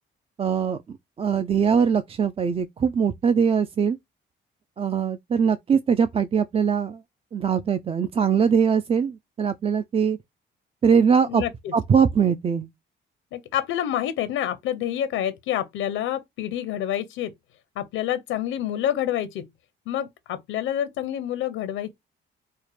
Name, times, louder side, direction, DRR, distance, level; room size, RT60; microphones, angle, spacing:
voice 1, 0.4-0.8 1.2-4.0 4.8-7.0 7.3-10.2 10.8-11.4 11.7-12.7, right 6 dB, 30° right, 0.3 m, -21 dB
voice 2, 11.3-11.7 13.3-17.3 17.8-19.5 19.9-21.9, left 11 dB, 90° left, 0.6 m, -28 dB
4.6 x 2.1 x 3.2 m
cardioid pair, 90°, 20 cm